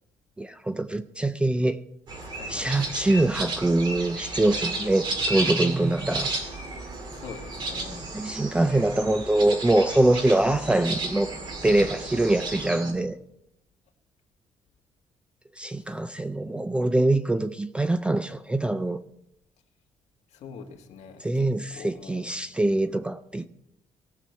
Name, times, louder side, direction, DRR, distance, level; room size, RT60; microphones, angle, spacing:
voice 1, 0.4-1.8 2.5-6.4 8.1-11.3 11.6-13.2 15.6-19.0 21.2-23.5, right 2 dB, 10° right, 0.3 m, -24 dB
sound 1, 2.1-12.9, right 2 dB, 40° right, 2.0 m, -33 dB
voice 2, 2.3-3.2 4.7-5.2 7.1-8.1 12.7-13.1 15.8-15.9 20.3-22.3, left 6 dB, 70° left, 1.7 m, -45 dB
18.0 x 6.7 x 4.5 m
cardioid pair, 180°, 12 cm